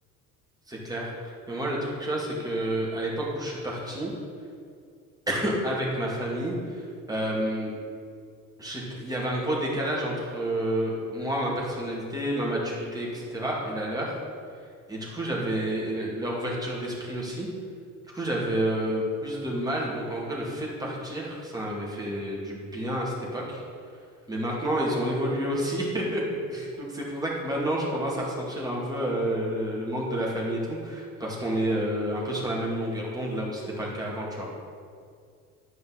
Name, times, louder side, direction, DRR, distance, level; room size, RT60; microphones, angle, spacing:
voice 1, 0.7-4.1 5.3-7.7 8.6-14.2 14.9-17.5 18.1-23.6 24.3-26.2 26.5-34.5, right 1 dB, 10° right, -4 dB, 2.3 m, -29 dB
10.5 x 5.1 x 4.2 m, 2.1 s
figure-of-eight pair, 60°, 45 cm